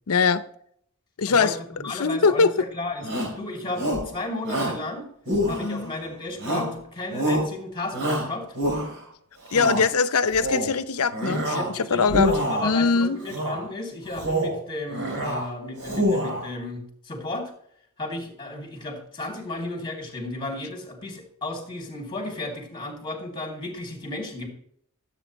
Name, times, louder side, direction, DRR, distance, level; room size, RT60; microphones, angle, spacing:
voice 1, 0.1-0.4 1.2-1.5 2.0-2.5 5.6-5.9 9.5-11.6 11.9-12.3 12.6-13.2, left 5 dB, 90° left, 0.6 m, -21 dB
voice 2, 1.3-3.1 3.3-5.1 5.5-8.6 11.5-17.5 18.0-24.5, left 2 dB, 20° left, 2.7 m, -34 dB
Shout, 3.0-3.4 3.8-4.1 4.4-4.8 5.3-5.9 6.4-6.8 7.1-7.5 7.9-9.0 9.4-9.8 10.3-10.7 11.1-11.7 12.0-12.7 13.3-13.6 14.1-14.6 14.9-15.4 15.8-16.5, equal, 60° right, 3.5 m, -26 dB
13.0 x 8.1 x 3.1 m
head